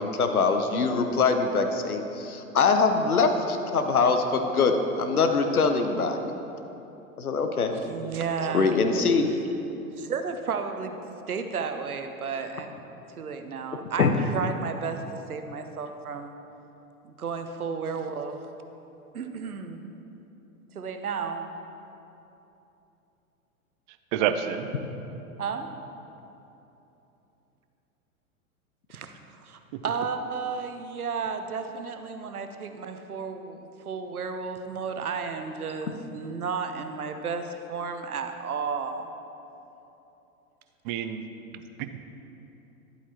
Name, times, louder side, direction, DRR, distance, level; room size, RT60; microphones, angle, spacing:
voice 1, 0.0-6.2 7.2-7.7 8.5-9.3 14.0-14.1, left 4 dB, 90° left, 6 dB, 0.8 m, -23 dB
voice 2, 7.5-8.8 9.9-11.0 11.3-12.7 13.2-15.0 15.3-16.4 17.0-18.4 19.1-19.8 20.7-21.5 25.4-25.7 28.9-39.1, right 5 dB, 90° right, 7 dB, 0.7 m, -33 dB
voice 3, 24.1-24.7 29.7-29.8 40.8-41.2 41.5-42.0, right 9 dB, 35° right, 9 dB, 0.5 m, -29 dB
11.5 x 8.2 x 2.9 m, 3.0 s
hypercardioid pair, 100°, 43 cm